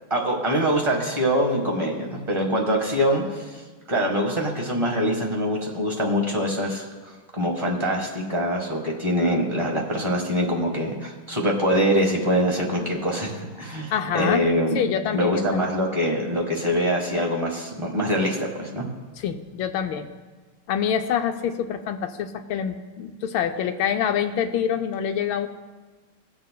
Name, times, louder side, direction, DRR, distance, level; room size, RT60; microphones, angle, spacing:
voice 1, 0.1-3.4 3.9-6.8 7.3-14.8 15.1-18.8, equal, 15° right, -2 dB, 1.1 m, -24 dB
voice 2, 13.9-14.5 14.7-15.7 19.2-20.1 20.7-25.5, left 8 dB, 75° left, 6 dB, 1.3 m, -26 dB
18.5 x 7.3 x 2.2 m, 1.3 s
omnidirectional pair, 2.4 m